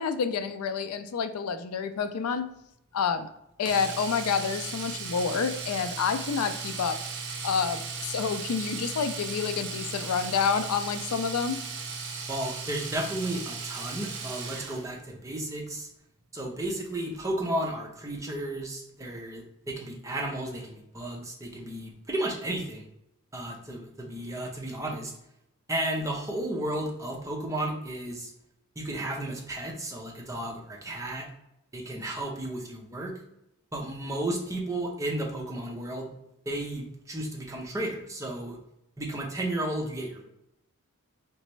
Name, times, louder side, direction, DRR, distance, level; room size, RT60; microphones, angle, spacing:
voice 1, 0.0-2.5 2.9-3.3 3.6-7.0 7.4-11.6, left 6 dB, 80° left, 10 dB, 0.4 m, -28 dB
Domestic sounds home sounds, 3.7-14.9 17.0-17.2 17.5-17.6, right 4 dB, 50° right, 0.6 m, -37 dB
voice 2, 12.3-15.9 16.3-22.8 23.3-25.1 25.7-28.3 28.8-31.3 31.7-33.1 33.7-36.1 36.5-38.6 39.0-40.2, right 1 dB, 15° right, -1 dB, 0.7 m, -33 dB
4.0 x 3.4 x 3.1 m, 0.82 s
head